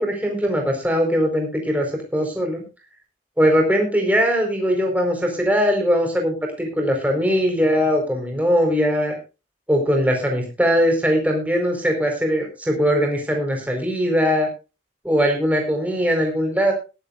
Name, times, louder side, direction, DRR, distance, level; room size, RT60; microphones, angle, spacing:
voice 1, 0.0-2.6 3.4-9.2 9.7-14.5 15.0-16.7, equal, 10° right, 1 dB, 4.6 m, -20 dB
21.5 x 10.5 x 2.6 m, 0.30 s
head